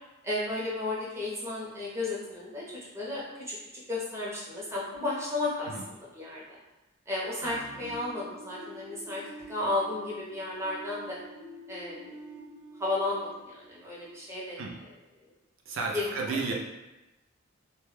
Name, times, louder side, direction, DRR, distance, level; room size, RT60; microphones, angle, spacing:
voice 1, 0.2-2.6 2.9-3.6 3.9-6.6 7.1-9.2 9.5-11.2 11.7-12.2 12.8-14.9 15.2-15.3 15.9-16.4, left 2 dB, 15° right, -7 dB, 0.6 m, -33 dB
voice 2, 7.4-7.9 14.6-14.7 15.7-16.5, right 4 dB, 70° right, 0 dB, 0.4 m, -33 dB
sound 1, 7.8-14.6, right 1 dB, 45° left, 0.5 m, -48 dB
2.1 x 2.1 x 3.1 m, 1.0 s
head